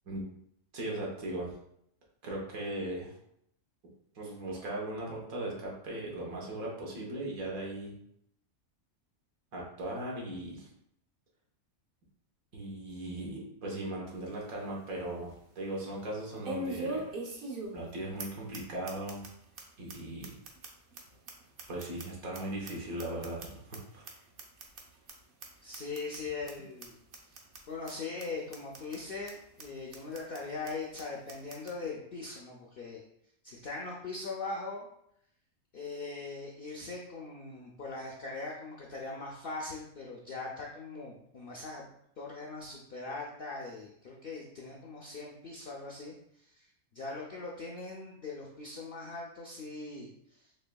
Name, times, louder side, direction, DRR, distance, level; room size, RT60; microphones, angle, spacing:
voice 1, 0.7-1.5 2.2-3.2 4.1-7.9 9.5-10.7 12.5-17.1 17.7-19.3 19.8-20.3 21.7-24.1, right 1 dB, 75° right, -3 dB, 1.5 m, -38 dB
sound 1, 14.1-14.2 14.6-14.7 16.4-17.9 18.2-18.3 18.5-18.6 18.9-19.3 19.6-19.7 19.9-20.0 20.2-22.4 22.6-23.8 24.0-24.1 24.4-24.8 25.1-25.2 25.4-25.5 25.7-26.2 26.5-26.6 26.8-26.9 27.1-27.6 27.9-28.0 28.2-28.3 28.5-29.0 29.3-29.4 29.6-29.7 29.9-30.4 30.7-30.8 31.0-31.1 31.3-31.7, right 2 dB, 55° right, 0.6 m, -40 dB
voice 2, 25.6-27.0 27.7-33.0 33.4-34.9 35.7-41.9 42.2-46.6 46.9-50.4, left 3 dB, 70° left, -2 dB, 0.5 m, -41 dB
4.2 x 3.3 x 2.2 m, 0.74 s
omnidirectional pair, 1.5 m